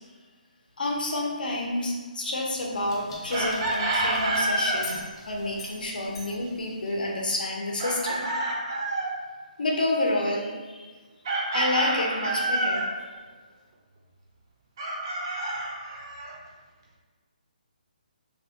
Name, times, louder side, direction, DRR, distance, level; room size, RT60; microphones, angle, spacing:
voice 1, 0.8-5.0 5.3-8.3 9.6-10.9 11.5-12.9, left 2 dB, 75° left, -1 dB, 0.6 m, -29 dB
sound 1, 2.7-7.3, left 1 dB, 35° left, 0.6 m, -44 dB
Chicken rooster, 3.3-4.8 7.8-9.1 11.2-12.9 14.8-16.3, right 2 dB, 25° right, 0.4 m, -28 dB
2.9 x 2.1 x 2.8 m, 1.4 s
hypercardioid pair, 170°, 5 cm